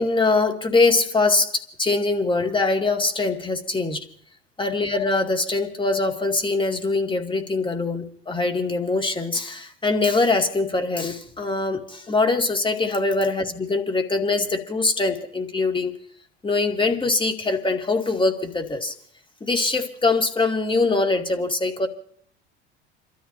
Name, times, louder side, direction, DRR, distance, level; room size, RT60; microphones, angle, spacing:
voice 1, 0.0-4.1 4.6-16.0 16.4-18.9 19.4-21.9, left 3 dB, 15° left, 2.6 m, -23 dB
30.0 x 13.5 x 2.8 m
figure-of-eight pair, 70°, 32 cm